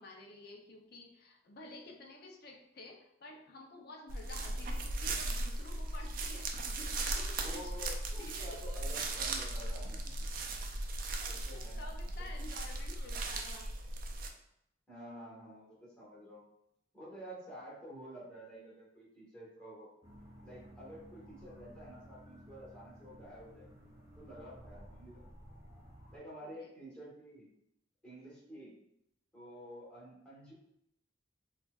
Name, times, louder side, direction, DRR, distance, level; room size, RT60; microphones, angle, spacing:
voice 1, 0.0-7.9 8.2-8.6 11.1-13.7 26.4-26.7, left 2 dB, 55° left, 2 dB, 0.6 m, -51 dB
sound 1, 4.1-14.3, right 2 dB, 50° right, 0.4 m, -37 dB
voice 2, 7.4-10.4 11.3-12.0 12.3-12.4 14.9-16.4 16.9-19.9 20.4-23.7 24.2-25.3 26.1-27.5 28.0-28.7 29.3-30.5, equal, 5° left, -9 dB, 1.5 m, -50 dB
sound 2, 20.0-26.2, equal, 15° right, 0.7 m, -55 dB
4.3 x 2.3 x 2.4 m, 0.78 s
head